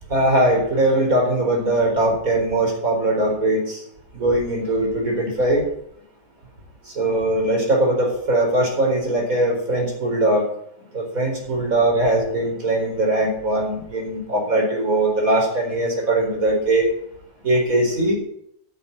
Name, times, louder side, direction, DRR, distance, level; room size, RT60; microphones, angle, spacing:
voice 1, 0.1-3.8 4.1-5.6 7.0-10.5 10.9-16.9 17.4-18.1, right 1 dB, 65° right, 1 dB, 4.7 m, -20 dB
12.5 x 7.1 x 8.7 m, 0.72 s
omnidirectional pair, 1.6 m